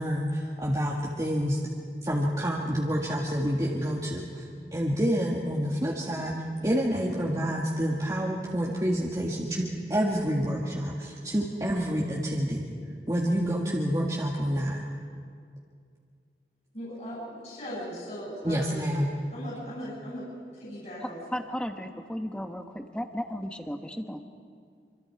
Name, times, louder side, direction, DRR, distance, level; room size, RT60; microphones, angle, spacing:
voice 1, 0.0-1.6 2.0-4.4 4.7-6.3 6.6-12.7 13.1-14.8 18.4-19.2, equal, 20° right, -4 dB, 1.8 m, -28 dB
voice 2, 16.7-18.8 19.3-20.3 20.5-21.2, equal, 45° left, -7 dB, 6.8 m, -38 dB
voice 3, 21.3-24.2, equal, 5° left, 5 dB, 1.1 m, -34 dB
26.0 x 25.5 x 4.7 m, 2.2 s
head